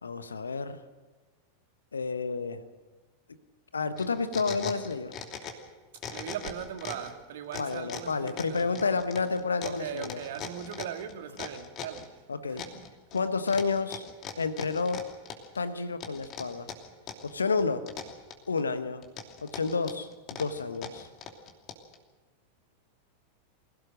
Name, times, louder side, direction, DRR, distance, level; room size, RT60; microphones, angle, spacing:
voice 1, 0.0-0.8 1.9-2.6 3.7-5.1 7.5-10.2 12.3-12.6 13.1-14.0 14.4-15.1 15.5-16.7 17.2-17.9 18.5-19.0 19.4-21.1, left 4 dB, 75° left, 1.2 m, -30 dB
sound 1, 4.0-5.7 6.0-7.1 7.5-12.1 12.6-13.2 13.5-15.6 16.0-17.3 17.6-18.6 19.0-22.0, left 7 dB, 35° left, 2.8 m, -40 dB
voice 2, 6.1-8.9 9.6-12.8, right 9 dB, 55° right, 1.8 m, -40 dB
24.5 x 17.0 x 6.5 m
figure-of-eight pair, 90°, 0 cm